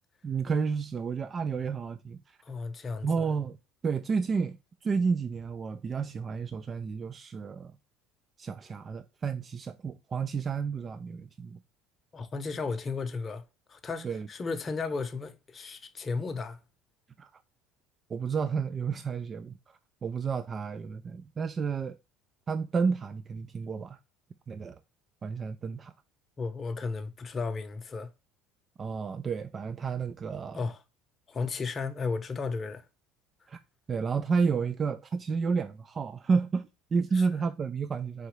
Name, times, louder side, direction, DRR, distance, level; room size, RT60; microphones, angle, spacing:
voice 1, 0.2-2.4 3.0-3.6 3.8-4.6 4.8-7.7 8.4-11.6 14.0-14.3 17.2-17.3 18.1-22.0 22.5-24.0 24.5-24.8 25.2-25.9 28.8-30.6 33.5-33.6 33.9-38.3, right 5 dB, 35° right, 0.3 m, -31 dB
voice 2, 2.4-3.1 12.1-13.4 13.7-16.6 26.4-28.1 30.5-30.8 31.3-32.8 37.1-37.2, left 4 dB, 30° left, 0.7 m, -34 dB
4.8 x 2.7 x 3.0 m
supercardioid pair, 90°, 0 cm